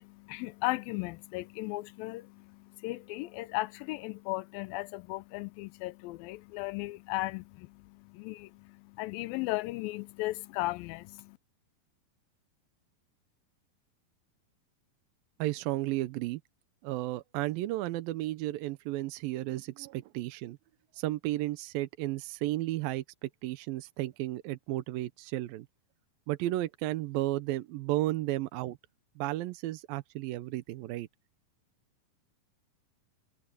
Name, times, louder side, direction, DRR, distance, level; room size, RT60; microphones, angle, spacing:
voice 1, 0.0-11.4, left 20 dB, 90° left, 2.4 m, -36 dB
voice 2, 15.4-16.4 16.8-20.6 20.9-25.7 26.3-28.8 29.2-31.1, right 16 dB, 85° right, 2.6 m, -33 dB
omnidirectional pair, 4.1 m